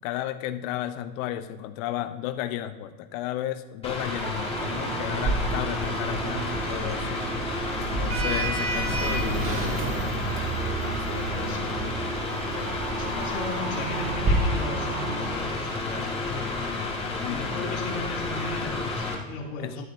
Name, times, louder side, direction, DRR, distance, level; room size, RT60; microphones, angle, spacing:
voice 1, 0.0-7.2 7.8-10.1 10.6-12.8 17.2-17.7 19.6-19.9, left 12 dB, 60° left, 11 dB, 0.7 m, -34 dB
Mechanical fan, 3.8-19.2, left 3 dB, 15° left, 1.7 m, -31 dB
sound 1, 4.1-15.4, right 9 dB, 90° right, 0.8 m, -36 dB
Sliding door, 5.2-14.3, right 2 dB, 30° right, 2.2 m, -32 dB
voice 2, 11.3-11.7 12.9-16.7 17.2-19.8, left 3 dB, 80° left, -2 dB, 2.8 m, -37 dB
12.5 x 7.5 x 2.6 m, 1.2 s
supercardioid pair, 110°, 43 cm